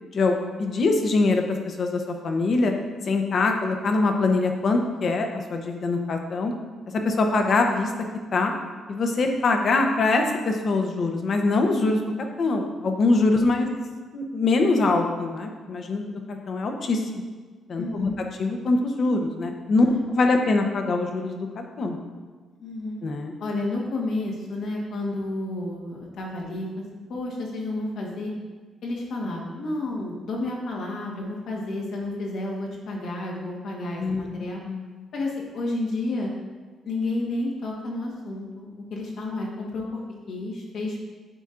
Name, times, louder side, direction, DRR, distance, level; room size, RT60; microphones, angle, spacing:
voice 1, 0.0-2.7 3.1-6.5 7.0-7.9 8.3-8.5 8.9-12.0 12.4-13.7 14.1-17.0 17.7-18.1 18.4-22.0 23.0-23.3 34.0-34.3 34.6-34.9, left 3 dB, 50° left, 4 dB, 0.7 m, -23 dB
voice 2, 13.3-13.8 17.8-18.2 19.8-20.0 22.6-23.0 23.4-26.8 27.1-28.3 28.8-34.6 35.1-36.3 36.8-40.0 40.3-41.0, left 2 dB, 70° left, -2 dB, 1.3 m, -31 dB
9.0 x 4.3 x 2.5 m, 1.4 s
cardioid pair, 90°, 0 cm